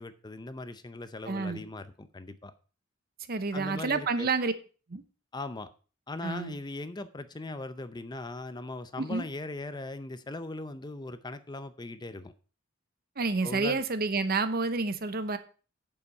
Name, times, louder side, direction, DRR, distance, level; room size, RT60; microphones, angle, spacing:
voice 1, 0.0-2.5 3.5-4.3 5.3-5.7 6.1-12.3 13.4-13.8, left 2 dB, 20° left, 0.6 m, -39 dB
voice 2, 1.3-1.6 3.3-4.5 4.9-5.0 6.2-6.5 9.0-9.3 13.2-15.4, right 4 dB, 50° right, 0.9 m, -29 dB
8.3 x 7.2 x 5.3 m
head